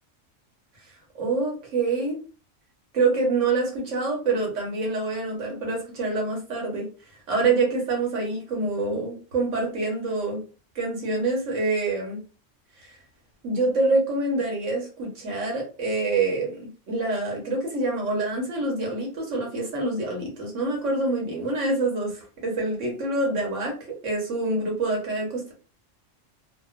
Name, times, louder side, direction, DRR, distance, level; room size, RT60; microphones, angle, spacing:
voice 1, 1.1-2.2 2.9-6.9 7.3-10.4 10.7-12.2 12.8-12.9 13.4-25.5, right 3 dB, 75° right, -1 dB, 1.4 m, -26 dB
2.9 x 2.2 x 2.4 m, 0.36 s
omnidirectional pair, 1.3 m